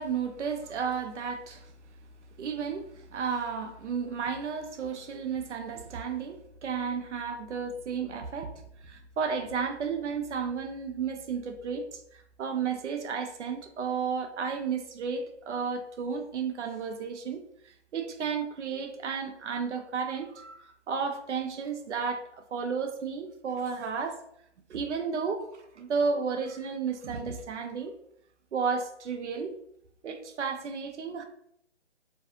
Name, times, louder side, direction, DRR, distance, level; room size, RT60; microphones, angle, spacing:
voice 1, 0.0-1.7 2.4-8.5 8.8-22.2 22.5-24.2 24.7-27.9 28.5-29.5 30.0-31.2, right 6 dB, 90° right, 6 dB, 0.5 m, -33 dB
2.5 x 2.3 x 2.6 m, 0.72 s
hypercardioid pair, 165°, 34 cm